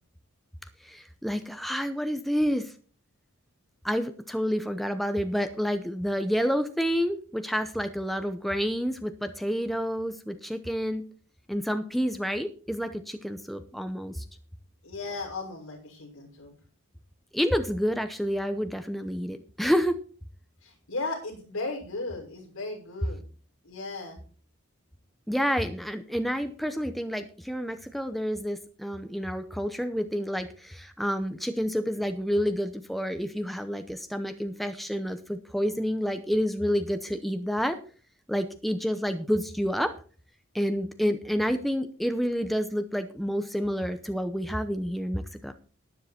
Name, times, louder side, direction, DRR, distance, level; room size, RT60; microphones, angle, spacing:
voice 1, 0.8-2.7 3.8-11.0 11.5-14.2 17.3-20.0 25.3-37.8 38.3-39.9 40.5-45.5, equal, ahead, 8 dB, 0.7 m, -29 dB
voice 2, 14.8-16.5 20.6-23.2 23.6-24.2, left 3 dB, 75° left, -1 dB, 6.0 m, -36 dB
12.0 x 10.5 x 4.3 m, 0.40 s
head